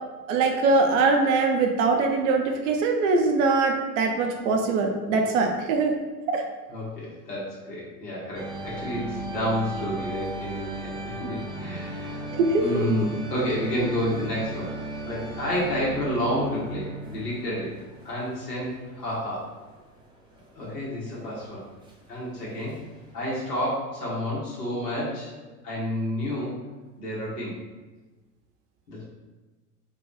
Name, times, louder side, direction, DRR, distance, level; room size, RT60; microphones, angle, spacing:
voice 1, 0.3-5.9 6.3-6.4 12.3-12.8, right 3 dB, 50° right, 3 dB, 0.8 m, -22 dB
voice 2, 6.7-12.3 12.6-14.7 15.0-17.7 18.0-19.5 20.5-21.6 22.1-22.8 23.1-25.3 25.6-26.6 27.0-27.5 28.9-29.0, equal, 75° left, -6 dB, 1.4 m, -30 dB
sound 1, 8.3-23.7, right 2 dB, 10° right, 0.8 m, -37 dB
4.1 x 2.4 x 3.9 m, 1.2 s
figure-of-eight pair, 80°, 48 cm